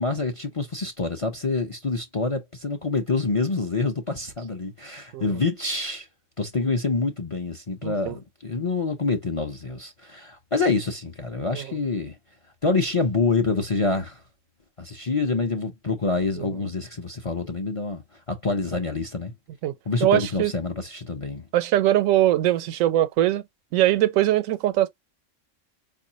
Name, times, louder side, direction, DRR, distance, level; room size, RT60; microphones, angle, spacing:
voice 1, 0.0-6.1 6.4-12.2 12.6-14.2 14.8-18.0 18.3-19.3 19.9-21.4, left 3 dB, 40° left, 0.5 m, -26 dB
voice 2, 7.8-8.1 19.6-19.7 20.0-20.5 21.5-23.4 23.7-24.9, right 13 dB, 90° right, 1.0 m, -21 dB
4.6 x 2.4 x 2.7 m
omnidirectional pair, 1.3 m